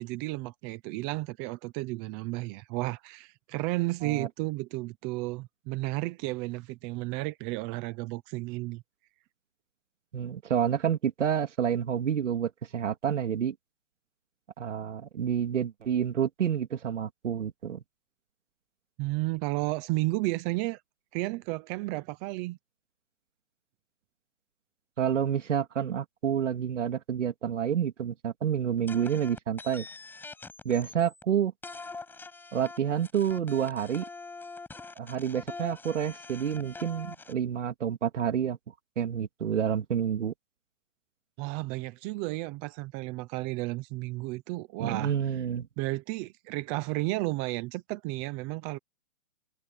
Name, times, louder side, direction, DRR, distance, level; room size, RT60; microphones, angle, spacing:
voice 1, 0.0-8.8 19.0-20.8 21.1-22.6 41.4-45.1 45.8-48.8, right 20 dB, 15° right, 0.6 m, -33 dB
voice 2, 10.1-13.5 14.6-17.8 25.0-29.9 30.6-31.5 32.5-34.0 35.0-38.6 39.0-40.3 44.8-45.7, right 8 dB, 70° right, 2.6 m, -29 dB
sound 1, 28.9-31.2 31.6-37.3, left 3 dB, 5° left, 6.7 m, -44 dB
hypercardioid pair, 155°, 38 cm